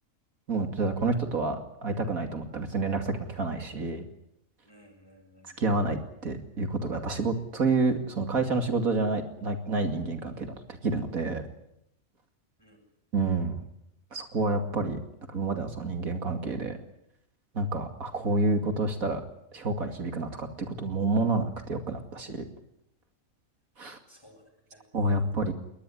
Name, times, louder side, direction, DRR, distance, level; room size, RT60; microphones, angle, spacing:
voice 1, 0.5-4.0 5.6-11.4 13.1-13.6 14.1-15.0 15.3-16.8 17.5-19.2 19.5-22.4 23.8-24.0 24.9-25.5, right 3 dB, 80° right, 6 dB, 2.9 m, -29 dB
voice 2, 4.6-5.5 12.6-12.8 24.1-24.4 24.7-25.4, equal, 15° left, 3 dB, 7.8 m, -56 dB
22.0 x 20.0 x 9.9 m, 0.77 s
omnidirectional pair, 1.5 m